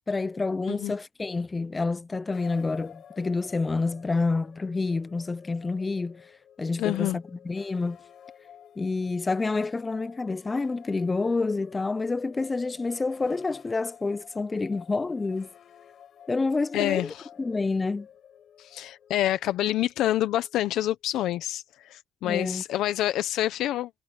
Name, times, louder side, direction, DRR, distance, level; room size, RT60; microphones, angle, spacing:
voice 1, 0.1-6.2 6.6-8.0 8.8-15.5 16.3-17.1 17.4-18.1 22.2-22.6, left 3 dB, 25° left, 0.5 m, -28 dB
sound 1, 2.3-21.4, left 9 dB, 65° left, 6.8 m, -52 dB
voice 2, 6.8-7.2 16.7-17.3 18.6-23.9, left 13 dB, 85° left, 0.7 m, -27 dB
cardioid pair, 90°, 0 cm